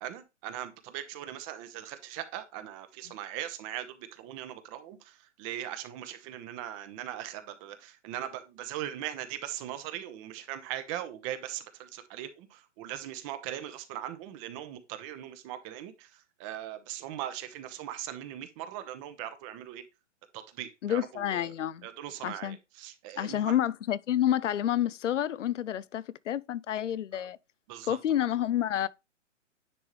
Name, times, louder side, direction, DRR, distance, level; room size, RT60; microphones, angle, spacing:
voice 1, 0.0-16.1 16.4-19.8 20.3-21.5 21.8-23.5 27.1-27.3 27.7-28.0, right 12 dB, 25° right, 0.9 m, -40 dB
voice 2, 20.8-21.9 22.2-22.6 23.2-27.4 27.9-28.9, left 11 dB, 75° left, 0.5 m, -29 dB
9.8 x 3.6 x 3.1 m
hypercardioid pair, 125°, 37 cm